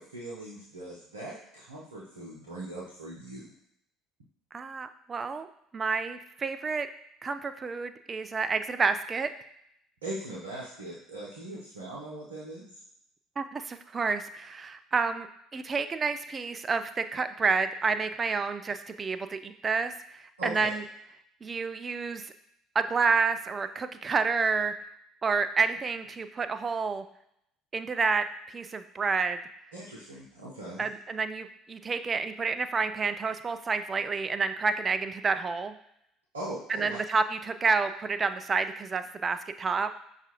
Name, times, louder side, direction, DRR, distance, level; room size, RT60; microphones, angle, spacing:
voice 1, 0.0-3.5 10.0-12.7 20.4-20.7 29.7-30.9 36.3-37.0, right 1 dB, 85° right, -7 dB, 0.7 m, -40 dB
voice 2, 4.5-5.5 5.7-6.9 7.2-9.3 13.4-15.3 15.5-20.8 21.4-22.3 22.8-24.7 25.2-27.0 27.7-29.4 30.8-35.8 36.7-39.9, right 4 dB, 35° right, 10 dB, 0.3 m, -29 dB
5.7 x 2.4 x 2.9 m, 0.74 s
hypercardioid pair, 60°, 0 cm